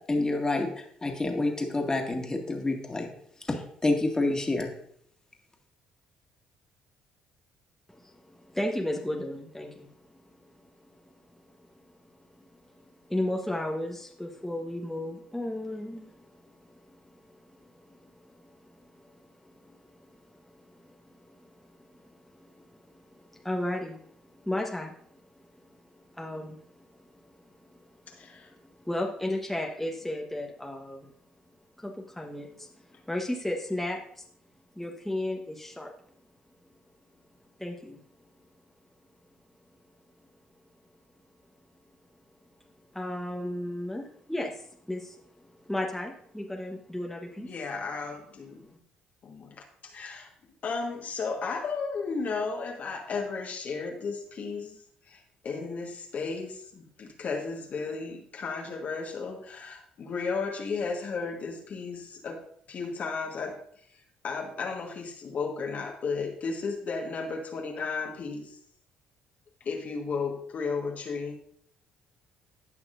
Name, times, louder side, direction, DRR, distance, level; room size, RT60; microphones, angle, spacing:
voice 1, 0.1-3.1 3.5-4.7, left 2 dB, 20° left, 2 dB, 2.0 m, -28 dB
voice 2, 7.9-9.9 10.6-10.7 12.8-12.9 13.1-25.2 26.2-26.7 27.1-27.4 28.2-31.1 31.8-32.7 33.1-34.2 34.8-35.9 37.6-38.0 42.9-47.5, left 1 dB, 5° left, 0 dB, 1.2 m, -35 dB
voice 3, 28.1-28.5 47.4-48.7 49.2-50.3 50.6-54.8 55.1-62.4 62.7-63.6 64.2-68.6 69.6-71.4, left 4 dB, 50° left, 1 dB, 1.5 m, -34 dB
16.0 x 5.8 x 2.6 m, 0.65 s
hypercardioid pair, 50°, 3 cm